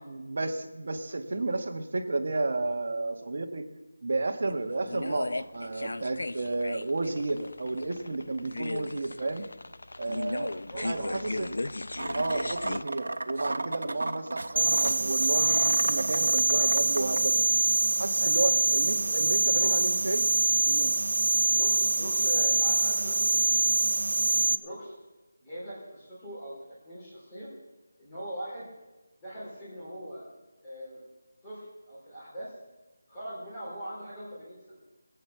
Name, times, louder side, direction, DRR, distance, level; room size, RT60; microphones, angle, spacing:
voice 1, 0.0-3.6 4.0-9.4 10.0-10.5 10.8-11.5 12.1-17.4 18.0-20.3 20.7-20.9, right 2 dB, 45° right, 5 dB, 1.5 m, -32 dB
sound 1, 4.4-12.8, left 2 dB, 85° left, 0.6 m, -37 dB
voice 2, 10.5-11.3 18.2-18.7 19.0-19.9 21.3-23.4 24.3-24.9 25.4-27.5 28.0-28.7 29.2-30.3 30.6-31.0 31.4-32.5 33.1-34.8, equal, 10° left, -11 dB, 3.5 m, -41 dB
sound 2, 12.0-17.2, right 2 dB, 90° right, 1.1 m, -34 dB
sound 3, 14.6-24.6, right 2 dB, 70° right, 0.8 m, -24 dB
20.0 x 8.3 x 6.9 m, 1.1 s
figure-of-eight pair, 175°, 0 cm